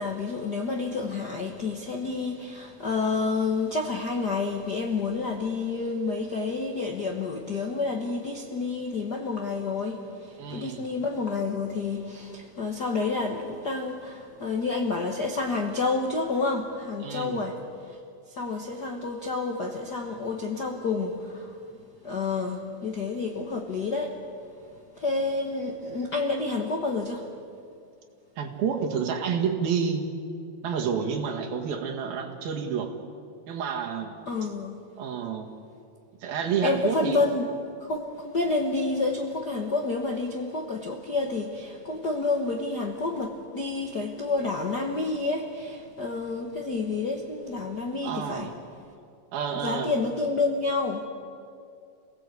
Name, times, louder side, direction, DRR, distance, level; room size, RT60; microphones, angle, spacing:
voice 1, 0.0-18.0 18.3-21.6 22.0-24.2 24.7-27.4 34.3-34.8 36.6-37.5 37.8-48.5 49.5-51.0, left 3 dB, 85° left, 2 dB, 0.9 m, -29 dB
voice 2, 10.4-10.8 17.0-17.4 28.4-30.1 30.6-32.9 33.5-34.1 35.0-35.5 36.2-37.2 48.0-48.5 49.3-49.9, right 6 dB, 85° right, 2 dB, 3.9 m, -29 dB
27.5 x 17.5 x 8.3 m, 2.4 s
omnidirectional pair, 4.1 m